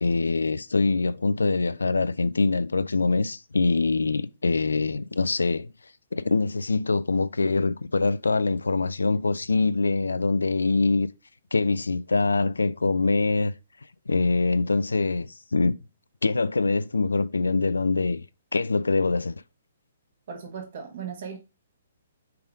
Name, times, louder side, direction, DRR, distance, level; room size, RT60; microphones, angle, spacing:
voice 1, 0.0-5.7 6.1-11.1 11.5-13.5 14.1-15.8 16.2-18.2 18.5-19.4, left 3 dB, 75° left, 0.4 m, -24 dB
voice 2, 20.3-21.4, right 7 dB, 50° right, 1.5 m, -37 dB
5.6 x 3.6 x 4.9 m
figure-of-eight pair, 125°, 0 cm